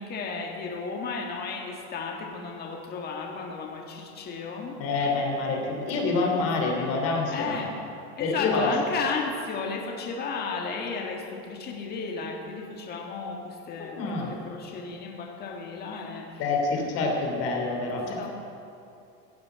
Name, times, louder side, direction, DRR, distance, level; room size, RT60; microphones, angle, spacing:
voice 1, 0.0-4.8 6.4-6.5 7.3-7.8 8.2-16.4 16.7-16.9 18.2-18.3, left 4 dB, 30° left, 1 dB, 1.7 m, -34 dB
voice 2, 4.8-7.6 8.2-8.7 13.8-14.3 16.4-18.3, left 3 dB, 45° left, 1 dB, 3.4 m, -27 dB
16.0 x 8.3 x 8.4 m, 2.7 s
supercardioid pair, 150°, 32 cm